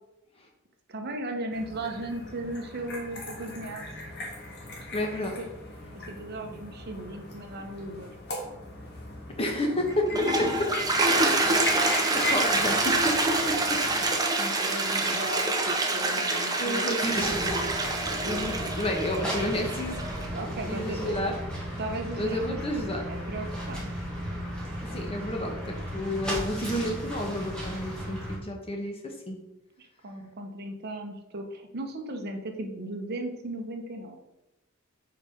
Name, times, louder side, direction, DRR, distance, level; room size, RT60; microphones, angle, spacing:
voice 1, 0.9-3.9 5.4-5.5 5.9-8.1 12.5-12.8 14.0-16.9 18.2-18.4 20.3-21.2 21.8-22.6 23.1-23.9 29.8-34.2, right 1 dB, 50° right, 4 dB, 0.9 m, -36 dB
sound 1, 1.5-14.0, left 1 dB, 50° left, 1.6 m, -39 dB
voice 2, 4.9-5.4 9.4-10.7 11.8-13.8 14.9-15.2 16.6-20.0 20.7-21.3 22.2-23.0 24.8-29.4, left 1 dB, 25° left, 2 dB, 1.1 m, -31 dB
Toilet flush, 9.9-20.3, right 2 dB, 20° right, 0.7 m, -26 dB
sound 2, 17.1-28.4, equal, 5° left, 1.5 m, -35 dB
4.8 x 4.8 x 5.0 m, 0.92 s
head